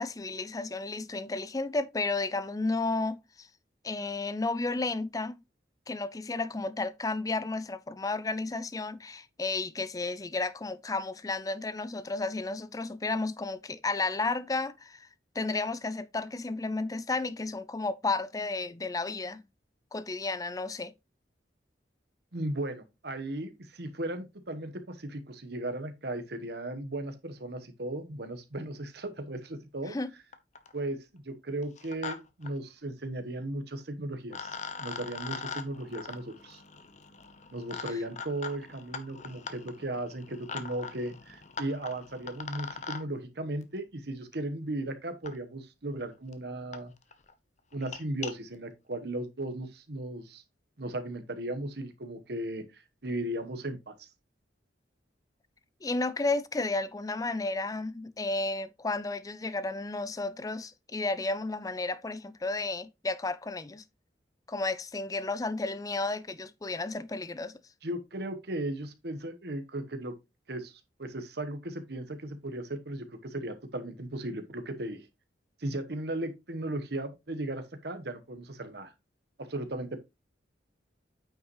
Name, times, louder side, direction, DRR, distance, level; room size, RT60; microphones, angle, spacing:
voice 1, 0.0-3.5 3.8-5.4 5.9-15.1 15.3-19.4 19.9-20.9 29.9-30.1 55.8-63.8 64.5-67.5, left 3 dB, 20° left, 0.4 m, -32 dB
voice 2, 22.3-30.0 30.7-36.6 37.5-46.9 47.7-50.4 50.8-54.1 67.8-70.1 70.5-70.7 71.0-75.1 75.6-78.9 79.4-80.0, right 1 dB, 65° right, 1.1 m, -36 dB
sound 1, 30.0-30.1 30.3-30.8 31.6-32.2 32.4-32.5 33.8-33.9 34.3-43.0 44.3-44.4 45.2-45.3 46.0-46.1 46.3-46.4 46.7-46.8 47.1-47.3 47.7-48.3, left 5 dB, 40° left, 0.8 m, -41 dB
9.0 x 5.2 x 3.1 m
head